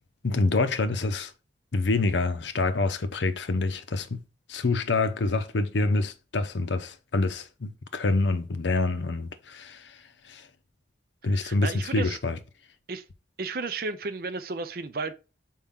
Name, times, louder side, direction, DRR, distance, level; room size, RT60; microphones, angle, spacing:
voice 1, 0.2-1.3 1.7-4.2 4.5-9.9 10.3-10.5 11.2-12.4, left 3 dB, 75° left, 0.7 m, -26 dB
voice 2, 11.3-12.2 12.9-13.0 13.4-15.1, right 3 dB, 55° right, 0.6 m, -33 dB
5.6 x 4.7 x 3.6 m
head